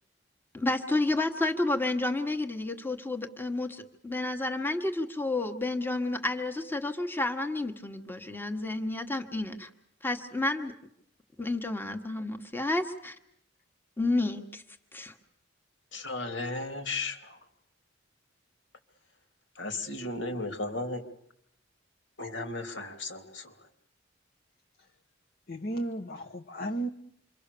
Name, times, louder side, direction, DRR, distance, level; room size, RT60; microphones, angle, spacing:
voice 1, 0.5-9.7 10.0-10.7 11.4-13.1 14.0-14.6 14.9-15.1, left 2 dB, 10° left, 1.3 m, -30 dB
voice 2, 15.9-17.4 19.6-21.0 22.2-23.5, left 2 dB, 75° left, 2.9 m, -35 dB
voice 3, 25.5-26.9, right 1 dB, 55° left, 1.1 m, -34 dB
27.0 x 24.0 x 6.9 m
head